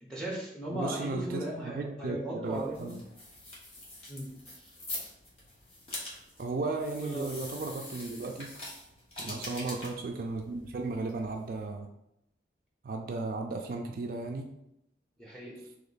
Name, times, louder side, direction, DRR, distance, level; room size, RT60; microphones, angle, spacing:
voice 1, 0.0-2.9 4.1-4.3 4.6-4.7 7.0-7.4 9.2-9.5 15.2-15.6, right 1 dB, 5° left, -4 dB, 0.9 m, -37 dB
voice 2, 0.7-3.0 6.4-8.5 9.2-11.9 12.8-14.5, right 3 dB, 50° right, 3 dB, 0.3 m, -35 dB
sound 1, 2.4-11.7, left 1 dB, 30° left, 1.0 m, -45 dB
2.9 x 2.9 x 4.0 m, 0.81 s
head